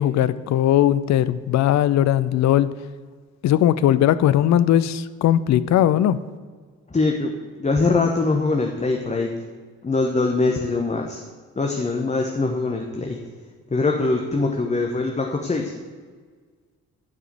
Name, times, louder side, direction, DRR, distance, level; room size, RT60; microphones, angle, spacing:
voice 1, 0.0-2.7 3.4-6.2, left 11 dB, 40° left, 15 dB, 0.5 m, -18 dB
voice 2, 6.9-7.3 7.6-9.3 9.8-11.2 11.6-13.2 13.7-15.7, left 3 dB, 15° left, 2 dB, 0.9 m, -22 dB
8.5 x 4.9 x 7.5 m, 1.5 s
figure-of-eight pair, 40°, 41 cm